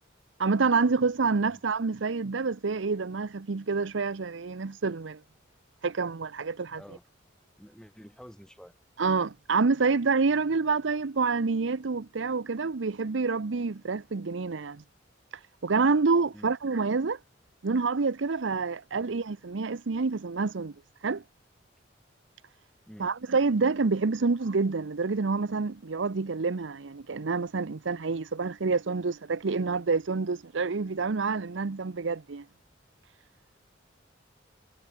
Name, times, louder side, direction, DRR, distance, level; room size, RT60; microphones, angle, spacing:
voice 1, 0.4-5.2 5.8-6.8 9.0-14.8 15.6-17.2 17.6-20.7 21.0-21.2 23.0-32.4, right 4 dB, 80° right, 0.7 m, -27 dB
voice 2, 7.6-8.7 16.3-16.5 19.0-19.1 22.9-23.1, equal, 5° left, 3.5 m, -49 dB
head